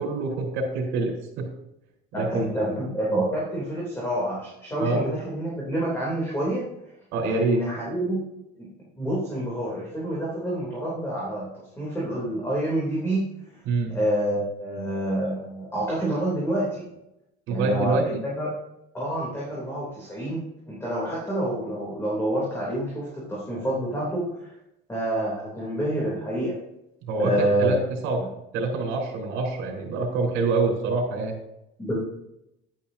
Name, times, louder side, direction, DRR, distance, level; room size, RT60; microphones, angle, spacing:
voice 1, 0.0-1.5 2.2-2.5 4.8-5.0 7.1-7.6 13.7-13.9 17.5-18.2 27.0-28.2 28.5-31.3, right 3 dB, 70° right, 0 dB, 4.1 m, -26 dB
voice 2, 2.1-6.6 7.2-8.2 8.6-8.7 8.9-11.5 11.8-13.3 13.9-16.8 17.5-18.5 18.9-24.5 24.9-26.6 27.2-27.8 28.2-28.3 31.8-32.0, right 1 dB, 10° left, -5 dB, 3.2 m, -28 dB
11.0 x 10.5 x 2.8 m, 0.85 s
cardioid pair, 140°, 21 cm